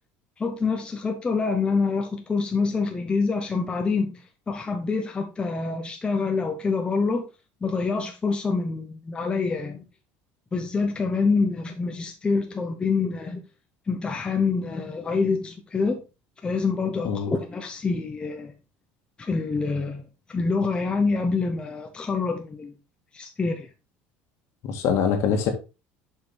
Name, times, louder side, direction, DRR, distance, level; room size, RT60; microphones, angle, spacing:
voice 1, 0.4-7.3 7.6-9.8 10.5-13.4 13.9-16.0 16.4-18.5 19.2-20.0 20.3-22.7 23.1-23.7, left 4 dB, 20° left, 0.9 m, -26 dB
voice 2, 24.6-25.5, left 7 dB, 60° left, 1.8 m, -24 dB
6.7 x 5.7 x 3.4 m
cardioid pair, 125°, 5 cm